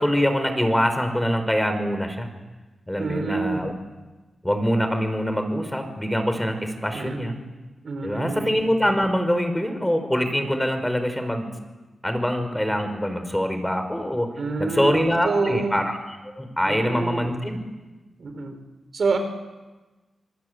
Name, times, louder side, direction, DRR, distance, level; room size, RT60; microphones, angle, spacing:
voice 1, 0.0-2.3 2.9-3.7 4.4-7.4 8.0-11.5 12.0-14.3 14.6-17.6, equal, 10° left, 7 dB, 5.2 m, -24 dB
voice 2, 3.0-3.6 6.9-7.3 7.8-8.6 14.4-15.7 16.6-17.3 18.2-18.6 18.9-19.2, right 4 dB, 65° right, 7 dB, 4.5 m, -27 dB
26.5 x 19.5 x 9.7 m, 1.2 s
cardioid pair, 55°, 0 cm